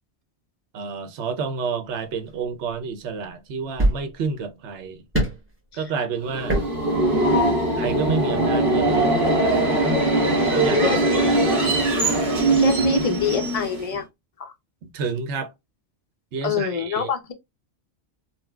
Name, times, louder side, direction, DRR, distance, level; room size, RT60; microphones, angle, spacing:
voice 1, 0.7-5.0 5.7-6.6 7.7-9.8 10.1-10.2 10.5-10.9 11.2-11.7 14.8-15.5 16.3-17.1, right 5 dB, 75° right, 0.9 m, -30 dB
sound 1, 2.1-2.3 3.3-3.4 3.8-4.4 5.1-5.5 6.4-6.8 7.0-7.1, right 1 dB, 10° right, 1.0 m, -23 dB
Subway metro underground, 6.2-14.0, right 2 dB, 50° right, 1.3 m, -21 dB
voice 2, 12.6-14.1 14.4-14.5 16.4-17.3, left 7 dB, 60° left, 0.4 m, -25 dB
4.0 x 2.1 x 2.2 m
omnidirectional pair, 1.2 m